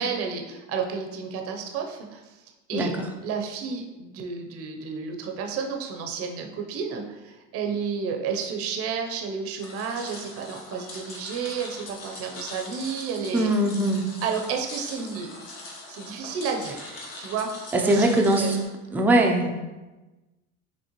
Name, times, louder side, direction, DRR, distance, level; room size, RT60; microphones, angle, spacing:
voice 1, 0.0-2.4 2.7-2.9 3.2-13.5 14.2-15.3 15.9-16.9 17.2-18.6, right 6 dB, 50° right, 3 dB, 0.6 m, -31 dB
voice 2, 2.7-3.1 13.3-14.1 17.7-18.6 18.9-19.7, right 1 dB, 5° right, 1 dB, 0.4 m, -21 dB
sound 1, 9.6-18.6, left 2 dB, 50° left, 1.2 m, -41 dB
5.4 x 3.2 x 2.9 m, 1.1 s
cardioid pair, 125°, 31 cm